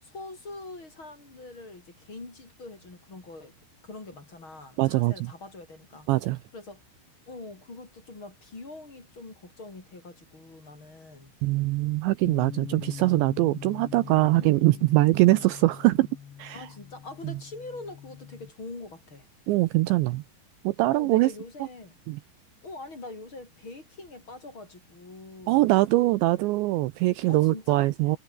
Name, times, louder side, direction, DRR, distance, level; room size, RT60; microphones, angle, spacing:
voice 1, 0.0-3.6 3.8-6.1 6.5-6.9 7.3-11.3 14.3-14.9 15.2-15.5 16.5-19.3 20.9-22.0 22.6-25.7 27.3-27.9, left 2 dB, 25° left, 4.9 m, -43 dB
voice 2, 4.8-5.1 6.1-6.4 11.4-16.1 16.4-16.7 17.2-17.4 19.5-20.2 20.6-21.3 22.1-22.2 25.5-28.2, right 19 dB, 80° right, 2.8 m, -22 dB
Bass guitar, 12.3-18.5, left 8 dB, 65° left, 5.4 m, -42 dB
omnidirectional pair, 5.7 m